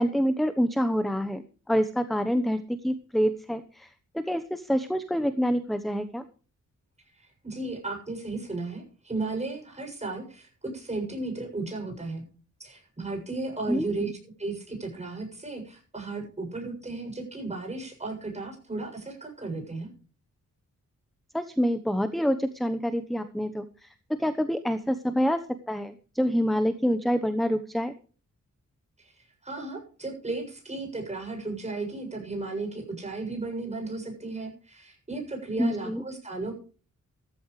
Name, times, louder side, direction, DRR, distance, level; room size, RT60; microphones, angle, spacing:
voice 1, 0.0-1.4 1.7-3.9 4.1-6.2 13.7-14.1 21.3-23.9 24.2-25.4 25.7-27.9 35.6-36.0, equal, ahead, 11 dB, 1.0 m, -27 dB
voice 2, 7.2-12.3 12.6-14.1 14.4-19.9 29.0-29.1 29.4-36.5, right 3 dB, 20° right, 2 dB, 7.3 m, -35 dB
16.0 x 14.0 x 3.2 m, 0.38 s
wide cardioid pair, 135°, 30 cm